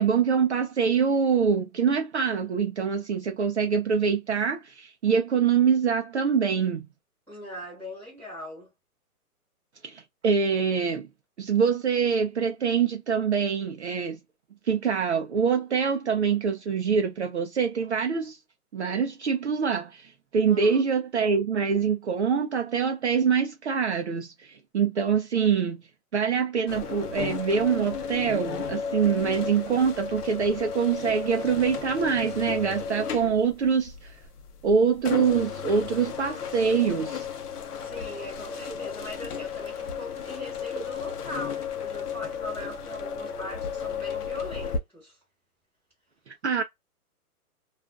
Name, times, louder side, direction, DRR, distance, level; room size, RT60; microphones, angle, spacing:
voice 1, 0.0-6.8 9.8-11.1 11.4-14.2 14.6-18.4 18.7-25.8 26.1-34.2 34.6-37.3 46.3-46.6, right 6 dB, 50° right, 0.4 m, -25 dB
voice 2, 7.3-8.7 20.5-20.9 37.8-45.2, left 1 dB, 5° left, 1.2 m, -40 dB
sound 1, 26.7-44.8, left 6 dB, 80° left, 0.7 m, -34 dB
2.4 x 2.3 x 2.2 m
hypercardioid pair, 160°, 46 cm